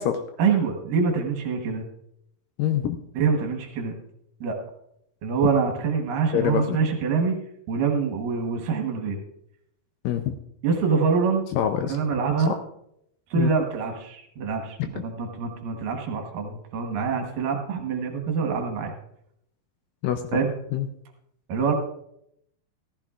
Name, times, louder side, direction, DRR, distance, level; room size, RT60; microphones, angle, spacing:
voice 1, 0.4-1.8 3.1-4.0 4.4-4.6 5.2-7.4 7.7-9.2 10.6-11.4 11.8-12.5 13.3-18.9 20.3-20.5 21.5-21.7, right 5 dB, 70° right, 3 dB, 2.6 m, -25 dB
voice 2, 2.6-3.0 6.3-6.8 10.0-10.4 11.5-12.0 12.5-12.6 13.4-13.5 14.8-14.9 20.0-20.2 20.7-20.9, left 10 dB, 80° left, 7 dB, 2.1 m, -25 dB
15.0 x 14.0 x 2.4 m, 0.76 s
omnidirectional pair, 4.4 m